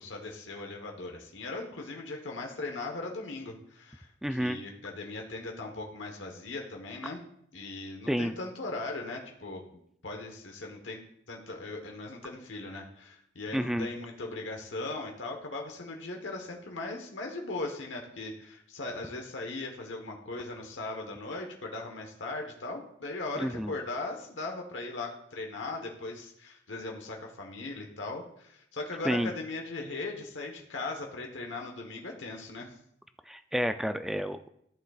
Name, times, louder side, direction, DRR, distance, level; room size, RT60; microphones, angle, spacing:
voice 1, 0.0-7.2 7.5-11.0 11.3-32.7, left 2 dB, 90° left, 1 dB, 1.1 m, -39 dB
voice 2, 4.2-4.6 8.1-8.3 13.5-13.9 23.4-23.7 29.0-29.3 33.3-34.5, equal, ahead, 9 dB, 0.3 m, -30 dB
14.5 x 6.6 x 2.4 m, 0.72 s
head